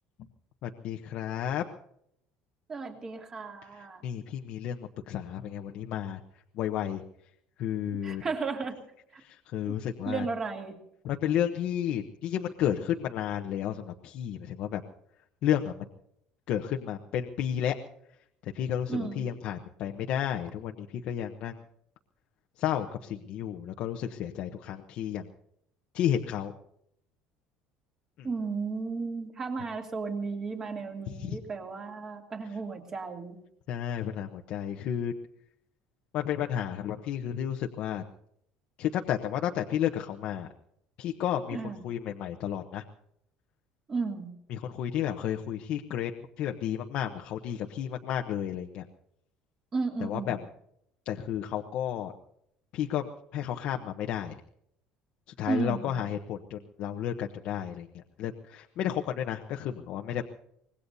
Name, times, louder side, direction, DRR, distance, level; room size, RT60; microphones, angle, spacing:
voice 1, 0.6-1.6 3.7-6.2 6.5-7.0 7.6-8.2 9.2-10.3 11.0-14.8 15.4-15.9 16.5-17.8 18.4-21.6 22.6-25.3 25.9-26.5 28.2-28.3 31.1-31.4 33.7-35.1 36.1-38.0 38.8-40.5 41.0-42.8 44.5-46.1 46.4-48.9 50.0-50.4 51.1-52.1 52.7-54.4 55.4-60.2, left 10 dB, 50° left, 3 dB, 0.9 m, -32 dB
voice 2, 2.7-4.0 8.0-8.8 9.1-9.2 9.7-9.8 10.1-10.8 18.9-19.3 28.2-33.4 41.5-41.8 43.9-44.3 49.7-50.4 55.5-56.0, right 4 dB, 25° right, 4 dB, 2.7 m, -34 dB
25.0 x 20.0 x 2.7 m, 0.75 s
cardioid pair, 165°, 2 cm